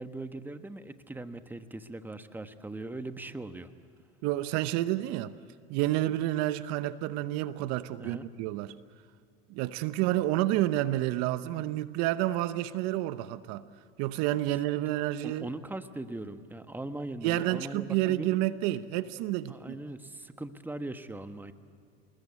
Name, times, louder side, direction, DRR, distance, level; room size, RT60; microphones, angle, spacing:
voice 1, 0.0-3.7 8.0-8.3 15.2-18.3 19.5-21.5, right 2 dB, 5° right, 1.3 m, -40 dB
voice 2, 4.2-5.3 5.7-8.7 9.5-13.6 14.0-15.5 17.2-19.8, right 15 dB, 60° right, 0.9 m, -29 dB
27.0 x 20.5 x 8.4 m
hypercardioid pair, 95°, 30 cm